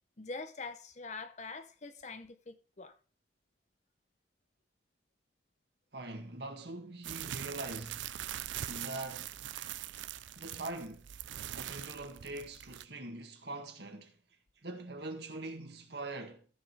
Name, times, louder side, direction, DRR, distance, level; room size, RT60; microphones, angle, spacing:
voice 1, 0.2-2.9, left 3 dB, 40° left, 0.7 m, -44 dB
voice 2, 5.9-8.1 8.7-9.4 10.4-11.1 11.5-14.2 14.6-16.5, right 2 dB, 60° right, 1.8 m, -43 dB
sound 1, 7.0-12.8, right 11 dB, 80° right, 0.5 m, -42 dB
14.0 x 5.0 x 4.8 m
head